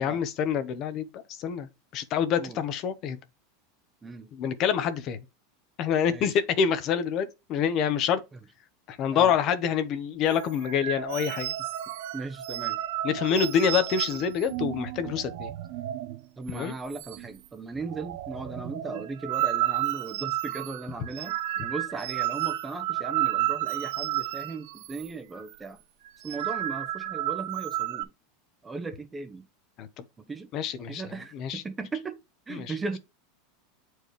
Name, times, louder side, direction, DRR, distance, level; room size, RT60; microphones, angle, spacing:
voice 1, 0.0-3.2 4.3-5.2 5.8-8.2 8.9-11.5 13.0-15.5 16.5-16.7 29.8-30.0 30.5-31.0 31.3-31.6 32.5-32.7, left 7 dB, 35° left, 0.9 m, -27 dB
sound 1, 10.2-16.2 16.5-16.6 16.9-17.5 17.8-25.1 25.4-25.6 26.0-28.0, right 14 dB, 60° right, 0.7 m, -32 dB
voice 2, 12.1-12.8 16.4-25.8 26.2-28.1 28.6-29.4 30.2-30.5 30.9-32.2 32.5-33.0, right 4 dB, 10° right, 0.8 m, -37 dB
8.7 x 4.6 x 3.2 m
supercardioid pair, 160°, 0 cm